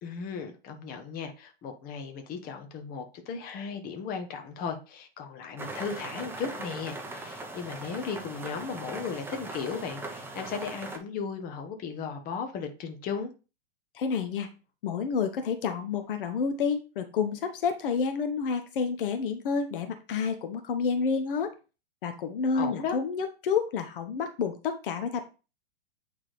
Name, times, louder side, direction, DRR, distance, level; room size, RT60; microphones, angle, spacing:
voice 1, 0.0-13.3 22.5-23.0, left 6 dB, 30° left, 1.2 m, -36 dB
sound 1, 5.6-11.0, right 2 dB, 5° right, 0.9 m, -40 dB
voice 2, 13.9-14.5 14.8-21.5 22.0-25.2, left 5 dB, 60° left, 0.9 m, -29 dB
8.6 x 3.7 x 3.2 m
hypercardioid pair, 110°, 30 cm